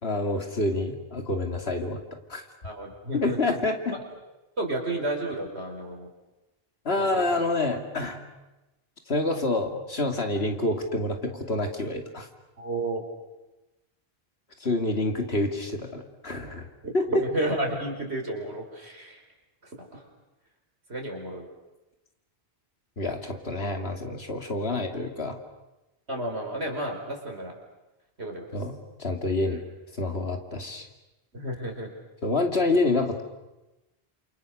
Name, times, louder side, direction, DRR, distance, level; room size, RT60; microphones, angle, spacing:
voice 1, 0.0-2.0 2.3-2.4 3.1-4.0 6.8-8.2 9.1-12.3 14.6-16.7 16.9-17.1 23.0-25.4 28.5-29.6 29.9-30.9 32.2-33.2, left 2 dB, 70° left, 4 dB, 2.9 m, -27 dB
voice 2, 2.6-3.4 3.9-4.0 4.6-6.1 7.0-7.4 12.6-13.0 16.8-19.2 19.6-20.1 20.9-21.5 26.1-27.5 28.2-28.5 29.5-29.6 31.3-31.9, right 1 dB, 80° right, 1 dB, 5.2 m, -32 dB
29.0 x 28.0 x 6.7 m, 1.0 s
omnidirectional pair, 1.1 m